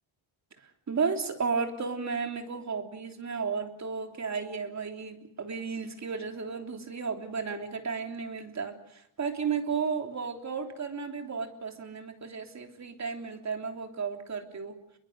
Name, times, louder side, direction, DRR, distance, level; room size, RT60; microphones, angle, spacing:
voice 1, 0.9-14.8, right 5 dB, 35° right, 4 dB, 3.4 m, -33 dB
29.0 x 22.5 x 6.4 m, 0.72 s
cardioid pair, 140°, 49 cm